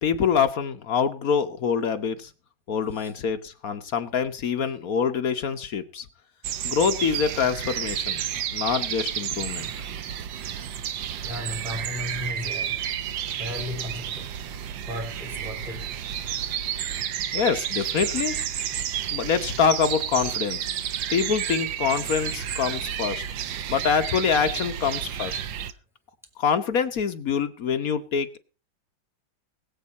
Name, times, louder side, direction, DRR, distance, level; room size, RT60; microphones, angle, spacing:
voice 1, 0.0-2.3 2.7-6.1 6.6-8.2 8.5-9.7 17.3-18.3 19.1-20.7 21.1-23.2 23.7-25.4 26.4-28.4, left 6 dB, 55° left, 1.2 m, -25 dB
sound 1, 6.4-25.7, right 9 dB, 70° right, 1.5 m, -31 dB
voice 2, 11.2-12.8 13.3-14.3 14.8-15.9, left 1 dB, ahead, 3.2 m, -35 dB
21.5 x 8.1 x 4.1 m
omnidirectional pair, 2.2 m